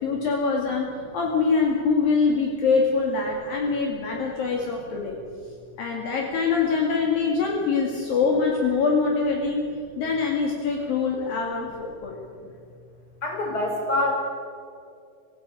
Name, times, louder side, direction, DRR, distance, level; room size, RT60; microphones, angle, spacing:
voice 1, 0.0-5.2 5.8-12.2, left 4 dB, 60° left, -1 dB, 3.8 m, -24 dB
voice 2, 13.2-14.1, left 2 dB, 25° left, 0 dB, 5.5 m, -25 dB
25.0 x 15.5 x 8.9 m, 2.3 s
omnidirectional pair, 4.7 m